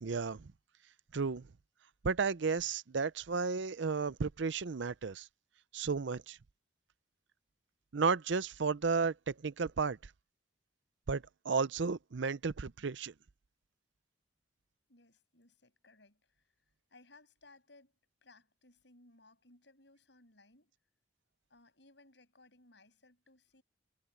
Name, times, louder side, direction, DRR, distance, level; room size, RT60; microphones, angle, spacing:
voice 1, 0.0-0.5 1.1-1.5 2.0-5.3 5.7-6.4 7.9-10.0 11.1-13.1, right 5 dB, 70° right, 0.6 m, -33 dB
voice 2, 14.9-16.5 16.9-18.0 18.2-20.7 21.5-23.6, left 2 dB, 65° left, 6.9 m, -62 dB
head